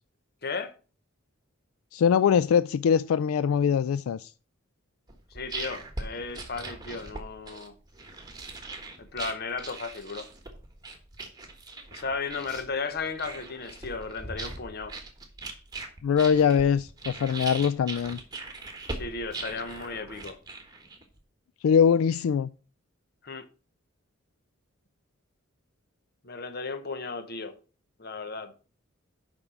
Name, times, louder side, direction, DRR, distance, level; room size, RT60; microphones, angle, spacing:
voice 1, 0.4-0.7 5.3-7.7 9.0-10.3 11.9-14.9 18.9-20.4 23.2-23.5 26.2-27.6 28.0-28.5, left 4 dB, 50° left, 0.9 m, -35 dB
voice 2, 1.9-4.3 16.0-18.2 21.6-22.5, left 7 dB, 85° left, 0.3 m, -22 dB
sound 1, 5.1-21.2, right 3 dB, 20° right, 1.4 m, -40 dB
7.1 x 5.3 x 5.8 m
head